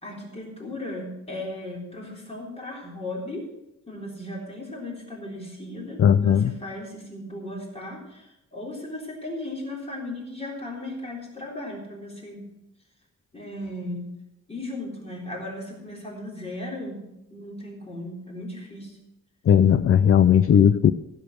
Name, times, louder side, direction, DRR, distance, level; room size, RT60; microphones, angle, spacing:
voice 1, 0.0-3.5 3.9-12.5 13.3-14.1 14.5-19.0, left 1 dB, 20° left, -2 dB, 3.7 m, -36 dB
voice 2, 6.0-6.5 19.5-20.9, left 8 dB, 45° left, 12 dB, 0.5 m, -17 dB
15.0 x 7.3 x 6.3 m, 0.89 s
wide cardioid pair, 175°, 31 cm